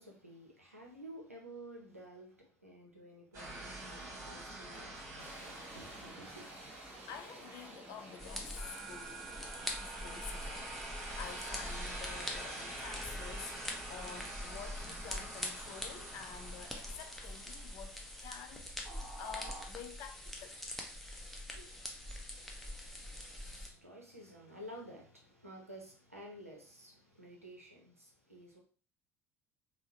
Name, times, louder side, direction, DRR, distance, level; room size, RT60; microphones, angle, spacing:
voice 1, 0.0-6.5 21.4-28.6, right 1 dB, 90° right, 0.6 m, -53 dB
sound 1, 3.3-7.8 8.5-18.2 18.8-19.6, right 2 dB, 40° right, 1.3 m, -47 dB
sound 2, 4.7-15.9, right 1 dB, 20° right, 1.3 m, -55 dB
voice 2, 7.1-9.3 9.8-13.6 13.9-20.6, left 8 dB, 55° left, 0.4 m, -49 dB
sound 3, 8.2-23.7, left 1 dB, ahead, 0.7 m, -44 dB
3.5 x 2.0 x 2.8 m
figure-of-eight pair, 60°, 7 cm